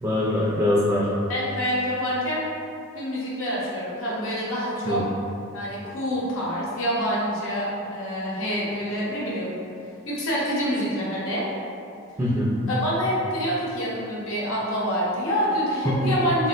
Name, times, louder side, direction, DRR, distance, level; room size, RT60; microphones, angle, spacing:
voice 1, 0.0-1.1 4.9-5.1 12.2-12.7 15.9-16.1, left 1 dB, 15° right, -7 dB, 0.3 m, -23 dB
voice 2, 1.3-2.4 2.9-5.0 5.5-9.5 10.1-11.5 12.7-16.5, equal, 80° left, -6 dB, 0.7 m, -26 dB
3.6 x 2.0 x 2.4 m, 2.4 s
head